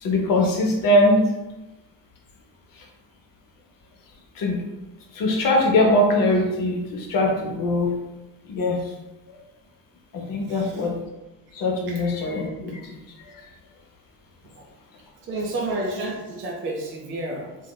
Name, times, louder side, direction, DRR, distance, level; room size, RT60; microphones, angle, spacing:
voice 1, 0.0-1.2 4.4-4.6 5.1-7.9 8.5-8.8 10.1-10.9 11.5-12.8, left 1 dB, 40° left, 0 dB, 0.7 m, -21 dB
voice 2, 10.5-10.9 14.5-14.7 15.3-17.6, right 2 dB, 25° right, -2 dB, 0.4 m, -30 dB
2.7 x 2.2 x 2.2 m, 1.0 s
hypercardioid pair, 55°, 49 cm